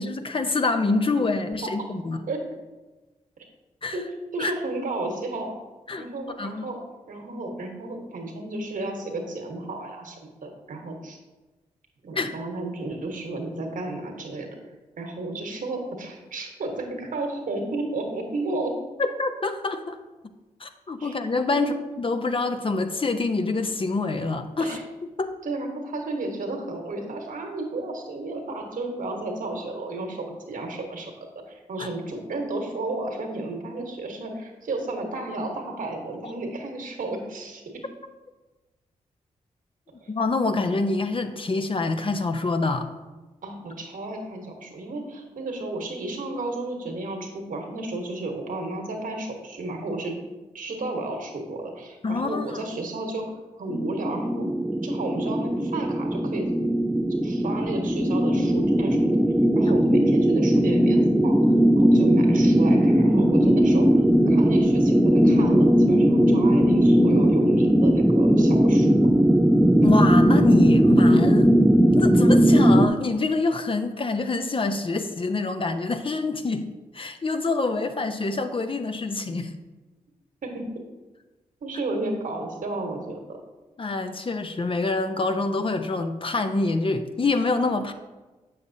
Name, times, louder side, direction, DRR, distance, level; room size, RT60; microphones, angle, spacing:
voice 1, 0.0-2.2 3.8-4.0 4.4-4.5 5.9-6.0 6.4-6.6 12.1-12.3 19.0-20.0 20.6-24.8 25.2-25.3 31.8-31.9 40.1-42.9 52.0-52.7 59.7-59.8 69.8-71.5 72.0-76.7 76.9-79.5 83.8-87.9, left 3 dB, 40° left, 8 dB, 0.6 m, -26 dB
voice 2, 4.3-5.6 6.0-6.8 7.1-11.2 12.0-14.5 15.0-18.8 21.0-21.1 21.5-21.8 24.6-24.8 25.4-37.6 40.0-40.1 43.4-50.1 50.5-53.3 53.5-54.5 54.8-56.5 57.2-59.2 59.5-61.4 61.7-63.9 64.3-68.9 80.4-80.6 81.6-83.4, right 2 dB, 70° right, 2 dB, 1.3 m, -32 dB
sound 1, 53.7-72.9, equal, 5° right, 0.4 m, -19 dB
7.1 x 6.6 x 2.7 m, 1.2 s
supercardioid pair, 40°, 14 cm